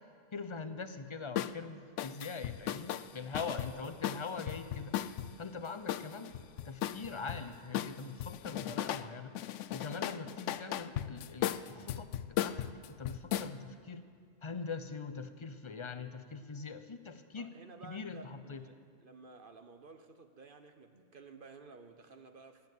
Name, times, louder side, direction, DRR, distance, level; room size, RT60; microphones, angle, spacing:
voice 1, 0.3-5.0 5.4-6.3 6.6-14.0 14.4-17.5 17.8-18.6, left 4 dB, 30° left, 10 dB, 0.7 m, -43 dB
sound 1, 1.4-1.6 2.0-5.3 5.9-7.4 7.7-9.1 9.3-13.5, left 11 dB, 80° left, 0.9 m, -36 dB
voice 2, 3.4-4.0 17.4-22.7, right 4 dB, 50° right, 7 dB, 0.9 m, -53 dB
19.0 x 8.5 x 8.5 m, 2.2 s
omnidirectional pair, 1.3 m